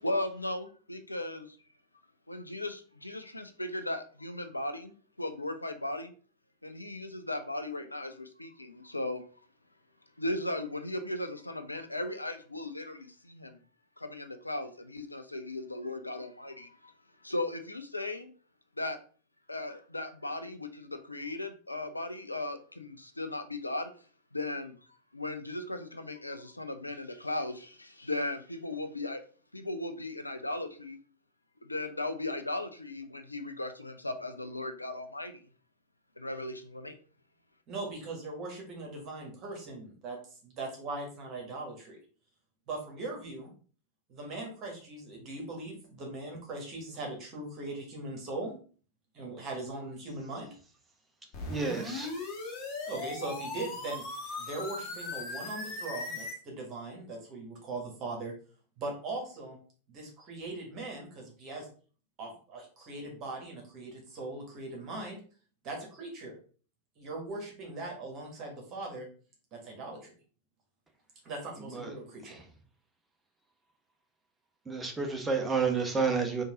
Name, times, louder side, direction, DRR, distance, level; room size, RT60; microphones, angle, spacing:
voice 1, 0.0-1.6 2.3-6.1 6.6-9.2 10.2-13.6 14.0-16.9 17.2-18.3 18.8-19.0 19.5-23.9 24.3-24.8 25.1-29.2 29.5-31.0 31.6-35.4 36.2-37.0, left 1 dB, 85° left, 0.5 m, -37 dB
voice 2, 37.7-40.2 40.4-42.0 42.7-43.5 44.1-48.5 49.1-50.5 52.9-54.0 54.4-58.3 58.8-59.6 59.9-61.7 62.2-65.2 65.6-66.3 67.0-69.1 69.5-70.1 71.2-72.4, right 2 dB, 35° right, 1.5 m, -40 dB
sound 1, 51.3-56.3, left 3 dB, 35° left, 1.2 m, -38 dB
voice 3, 51.5-52.1 71.7-71.9 74.7-76.4, right 5 dB, 10° right, 0.9 m, -30 dB
3.9 x 2.6 x 3.6 m
figure-of-eight pair, 90°, 0 cm